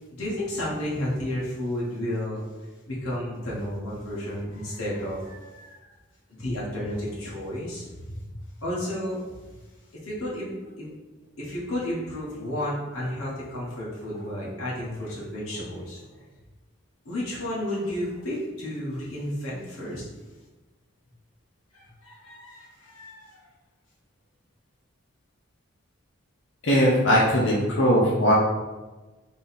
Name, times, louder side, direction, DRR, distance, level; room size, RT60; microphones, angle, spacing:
voice 1, 0.1-2.4 2.9-5.9 6.3-8.2 8.6-9.2 10.0-10.5 10.8-10.9 11.4-16.0 17.0-20.0 21.7-23.5, left 1 dB, 85° left, -6 dB, 1.2 m, -32 dB
voice 2, 26.6-28.3, equal, 60° left, -4 dB, 0.7 m, -20 dB
3.8 x 2.9 x 4.0 m, 1.2 s
head